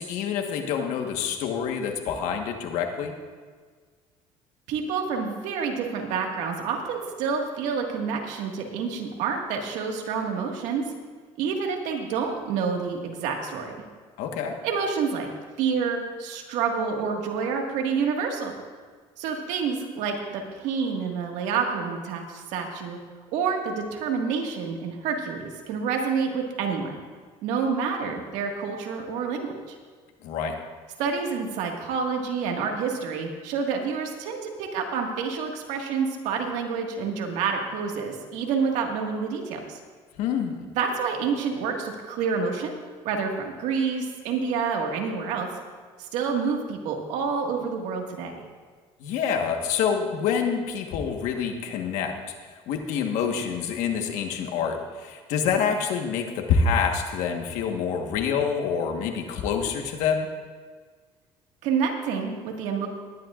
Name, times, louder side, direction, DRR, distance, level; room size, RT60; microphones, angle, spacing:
voice 1, 0.0-3.1 14.2-14.6 30.2-30.6 40.2-40.7 49.0-52.3 52.7-60.3, left 6 dB, 80° left, 4 dB, 1.3 m, -27 dB
voice 2, 4.7-10.8 11.4-13.8 14.6-15.3 15.6-18.5 19.2-23.0 23.3-27.0 27.4-29.8 31.0-39.8 40.8-42.8 43.0-45.5 46.0-48.4 61.6-62.9, right 5 dB, 80° right, 2 dB, 1.8 m, -28 dB
20.0 x 11.0 x 2.5 m, 1.5 s
cardioid pair, 100°, 12 cm